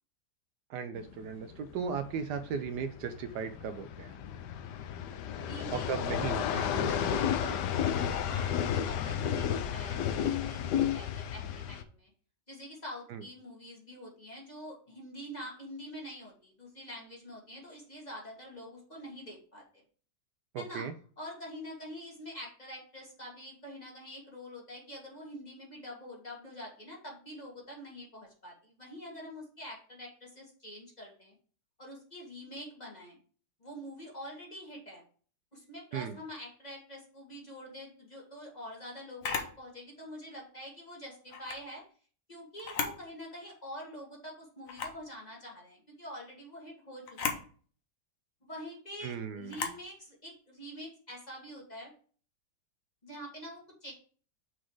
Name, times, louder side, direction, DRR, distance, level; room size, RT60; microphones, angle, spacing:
voice 1, 0.7-4.2 5.7-7.6 13.1-13.2 20.5-20.9 35.9-36.2 49.0-49.7, right 6 dB, 75° right, 9 dB, 1.1 m, -37 dB
sound 1, 1.0-11.8, left 9 dB, 75° left, 1.2 m, -32 dB
voice 2, 5.4-5.9 8.2-12.1 12.5-19.8 20.6-20.9 21.2-31.3 31.8-33.2 33.6-35.0 35.5-41.8 42.3-47.4 48.4-51.9 53.0-53.9, equal, 25° left, -2 dB, 1.7 m, -46 dB
Camera, 39.2-39.6 41.3-41.6 42.6-43.0 43.5-43.6 44.7-45.0 47.1-47.4 49.5-49.8, left 5 dB, 55° left, 1.3 m, -35 dB
6.1 x 4.0 x 4.7 m, 0.43 s
omnidirectional pair, 1.9 m